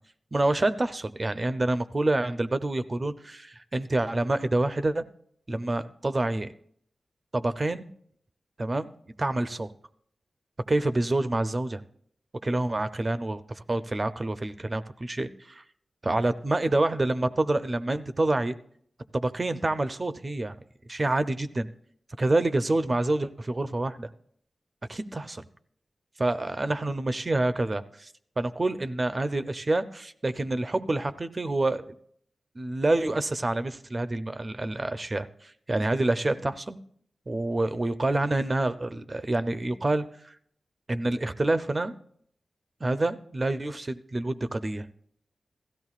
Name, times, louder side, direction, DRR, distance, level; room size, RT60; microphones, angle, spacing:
voice 1, 0.3-5.0 5.5-6.5 7.3-7.9 8.6-8.9 9.2-9.7 10.7-11.8 12.4-15.6 16.0-18.5 19.1-20.5 20.9-21.7 22.2-24.1 24.9-25.4 26.2-28.1 28.4-31.9 32.6-36.8 37.3-40.3 40.9-41.9 42.8-44.9, right 2 dB, 35° right, 11 dB, 0.5 m, -27 dB
17.0 x 14.0 x 2.4 m, 0.66 s
wide cardioid pair, 80°, 0 cm